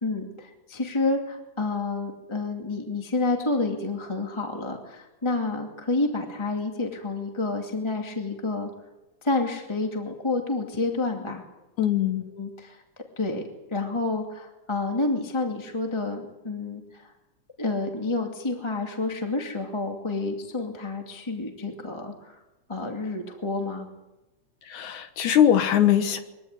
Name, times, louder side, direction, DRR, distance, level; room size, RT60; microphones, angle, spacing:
voice 1, 0.0-8.7 9.2-11.4 12.3-12.8 13.2-13.4 13.7-17.1 17.6-22.4 22.7-23.9, left 3 dB, 10° left, 2 dB, 2.1 m, -29 dB
voice 2, 11.8-12.2 24.7-26.2, left 10 dB, 80° left, 8 dB, 2.7 m, -21 dB
23.0 x 16.0 x 9.6 m, 1.0 s
omnidirectional pair, 3.5 m